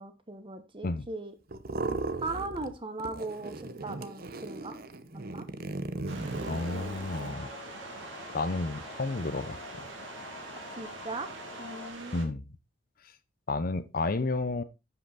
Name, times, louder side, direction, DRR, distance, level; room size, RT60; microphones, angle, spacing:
voice 1, 0.0-1.3 2.2-3.5 3.8-4.8 5.1-5.4 10.8-11.3 11.6-12.3, right 2 dB, 25° right, 1.1 m, -38 dB
sound 1, 1.5-2.7 3.0-7.3, right 2 dB, 50° right, 0.8 m, -37 dB
sound 2, 6.1-12.2, right 3 dB, 70° right, 2.4 m, -45 dB
voice 2, 6.5-7.5 8.3-9.9 12.1-12.4 13.5-14.6, left 3 dB, 45° left, 0.7 m, -31 dB
sound 3, 6.7-11.9, left 3 dB, 15° left, 2.0 m, -47 dB
10.5 x 5.8 x 4.0 m
head